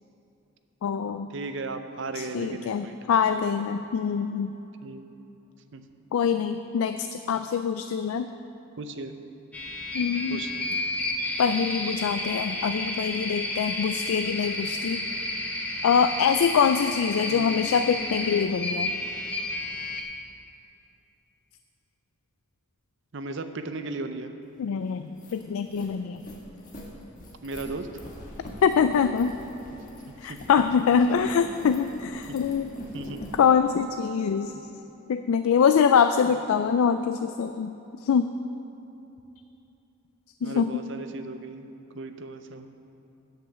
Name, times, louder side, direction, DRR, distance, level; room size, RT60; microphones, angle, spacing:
voice 1, 0.8-1.3 2.1-4.5 6.1-8.3 9.9-10.4 11.4-15.1 15.8-18.9 24.6-26.2 28.6-29.4 30.2-32.7 33.3-34.5 35.1-38.3 40.4-40.8, left 6 dB, 75° left, 9 dB, 0.3 m, -24 dB
voice 2, 1.3-3.0 4.8-5.0 5.7-5.8 8.8-9.1 10.3-10.6 17.3-17.6 23.1-24.3 27.4-28.0 30.2-30.4 32.3-32.4 32.9-33.2 36.2-36.3 40.4-41.7 41.9-42.7, right 3 dB, 55° right, 8 dB, 0.6 m, -36 dB
sound 1, 9.5-20.0, left 1 dB, 5° left, 0.8 m, -31 dB
sound 2, 24.6-24.7 25.0-33.4, equal, 40° left, 1.4 m, -43 dB
8.6 x 8.0 x 6.8 m, 2.9 s
head